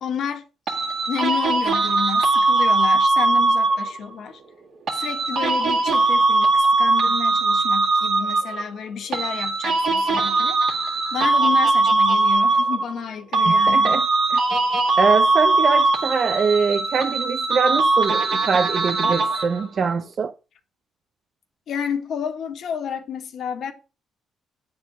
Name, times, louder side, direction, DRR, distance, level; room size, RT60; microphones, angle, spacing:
voice 1, 0.0-0.4 1.1-4.4 4.9-10.6 11.1-14.0 21.7-23.7, left 7 dB, 65° left, 1.6 m, -30 dB
sound 1, 0.7-4.0 4.9-8.7 9.1-13.1 13.3-19.7, right 3 dB, 65° right, 2.0 m, -20 dB
voice 2, 13.5-14.1 14.3-14.4 15.0-20.3, right 5 dB, 50° right, 0.6 m, -23 dB
9.4 x 4.4 x 6.2 m
cardioid pair, 90°, 0 cm